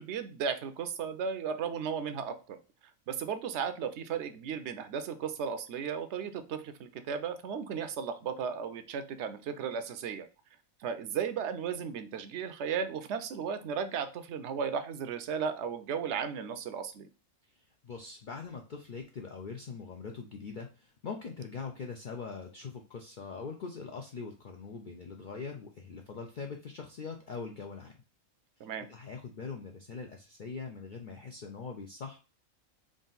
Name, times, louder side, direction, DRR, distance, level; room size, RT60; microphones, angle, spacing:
voice 1, 0.0-2.6 3.1-10.3 10.8-17.1 28.6-28.9, right 7 dB, 65° right, 10 dB, 0.8 m, -35 dB
voice 2, 17.4-28.0 28.6-32.2, left 5 dB, 65° left, 2 dB, 0.4 m, -42 dB
3.7 x 2.5 x 3.9 m, 0.32 s
omnidirectional pair, 1.4 m